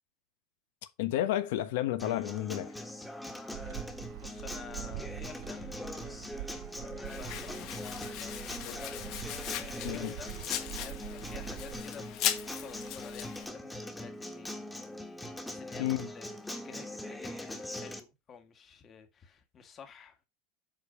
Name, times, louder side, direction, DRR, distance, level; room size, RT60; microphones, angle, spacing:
voice 1, 1.0-2.7 8.6-8.7 9.8-10.1 15.8-16.1, left 13 dB, 80° left, 1.2 m, -31 dB
Acoustic guitar, 2.0-18.0, left 1 dB, 5° left, 1.5 m, -42 dB
sound 1, 3.5-11.8, right 20 dB, 65° right, 0.4 m, -45 dB
voice 2, 4.1-7.7 8.2-9.2 9.8-14.5 14.9-15.0 15.4-20.2, left 6 dB, 30° left, 1.8 m, -51 dB
Domestic sounds home sounds, 7.0-13.4, left 11 dB, 50° left, 1.7 m, -38 dB
8.2 x 5.1 x 5.1 m
supercardioid pair, 135°, 0 cm